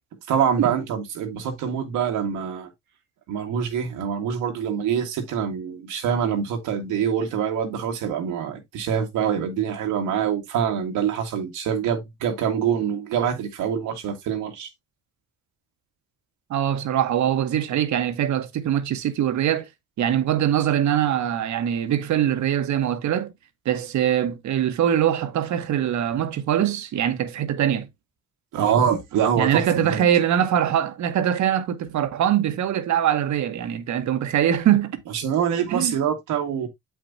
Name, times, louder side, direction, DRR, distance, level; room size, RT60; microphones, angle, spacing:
voice 1, 0.3-2.7 3.3-14.7 28.5-30.1 35.1-36.7, right 8 dB, 90° right, 1.7 m, -25 dB
voice 2, 16.5-19.7 20.0-23.3 23.6-27.9 29.4-35.0 35.7-35.9, right 10 dB, 70° right, 1.2 m, -22 dB
7.7 x 6.0 x 2.7 m
cardioid pair, 90°, 30 cm